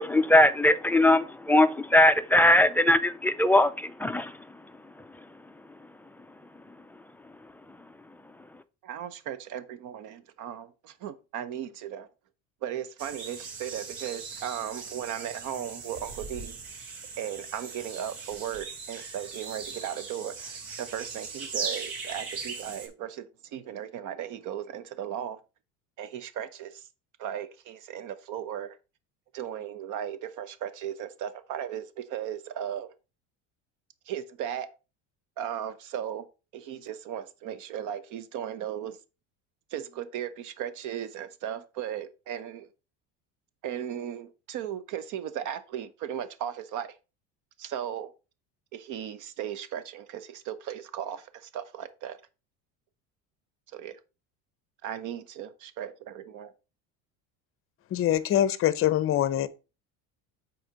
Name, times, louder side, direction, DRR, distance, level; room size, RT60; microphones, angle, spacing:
voice 1, 0.0-5.9 6.2-6.3 6.7-7.0 7.2-7.9 8.5-8.6, left 1 dB, 5° left, 0.3 m, -23 dB
voice 2, 8.8-12.1 12.6-16.6 17.2-25.4 26.0-26.8 27.2-28.8 29.3-32.9 34.1-34.7 35.4-36.3 36.5-39.0 39.7-42.7 43.6-46.9 47.6-48.1 48.7-52.2 53.7-54.0 54.8-56.5, right 10 dB, 55° right, 1.0 m, -36 dB
sound 1, 13.0-22.9, right 5 dB, 80° right, 2.8 m, -39 dB
voice 3, 57.9-59.5, left 11 dB, 35° left, 0.7 m, -24 dB
6.5 x 4.3 x 5.1 m
cardioid pair, 125°, 36 cm